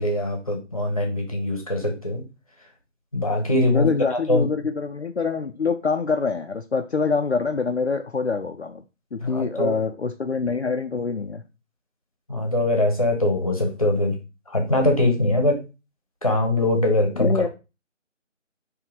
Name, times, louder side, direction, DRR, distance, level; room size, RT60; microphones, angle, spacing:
voice 1, 0.0-2.2 3.1-3.9 4.3-4.5 9.2-9.8 12.3-14.2 14.5-15.6 16.2-17.5, left 1 dB, 30° left, 2 dB, 0.9 m, -22 dB
voice 2, 3.7-8.8 9.1-11.4 17.2-17.5, left 5 dB, 60° left, 4 dB, 0.5 m, -25 dB
4.5 x 2.8 x 3.9 m, 0.28 s
figure-of-eight pair, 165°, 38 cm